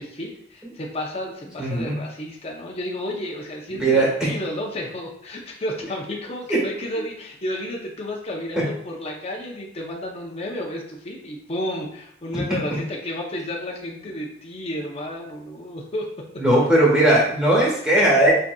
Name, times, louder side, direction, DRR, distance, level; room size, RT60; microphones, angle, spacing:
voice 1, 0.0-16.1, left 1 dB, 35° left, -2 dB, 0.6 m, -32 dB
voice 2, 1.6-2.0 3.7-4.3 6.5-6.6 12.3-12.4 16.4-18.3, right 1 dB, 5° right, -6 dB, 1.7 m, -18 dB
7.5 x 2.7 x 2.3 m, 0.69 s
head